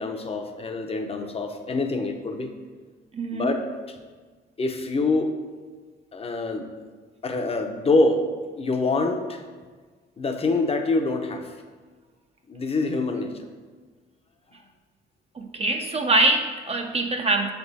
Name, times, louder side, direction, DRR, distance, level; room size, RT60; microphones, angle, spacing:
voice 1, 0.0-2.5 3.3-3.6 4.6-5.3 6.1-6.7 7.2-8.2 8.6-9.4 10.2-11.4 12.5-13.3, left 3 dB, 30° left, 5 dB, 0.7 m, -25 dB
voice 2, 3.1-3.5 15.3-17.5, right 2 dB, 30° right, 3 dB, 0.5 m, -23 dB
7.1 x 3.5 x 4.1 m, 1.5 s
cardioid pair, 90°, 20 cm